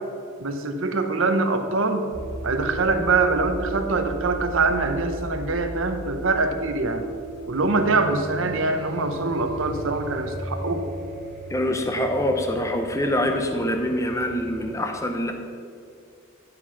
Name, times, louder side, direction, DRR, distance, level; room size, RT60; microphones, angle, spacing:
voice 1, 0.4-2.1 2.4-7.0 7.5-10.8, right 3 dB, 60° right, 7 dB, 0.8 m, -24 dB
sound 1, 2.1-14.7, right 1 dB, 45° right, 1.5 m, -36 dB
voice 2, 11.5-15.3, left 1 dB, 15° left, 4 dB, 0.6 m, -25 dB
11.0 x 4.9 x 5.7 m, 2.3 s
head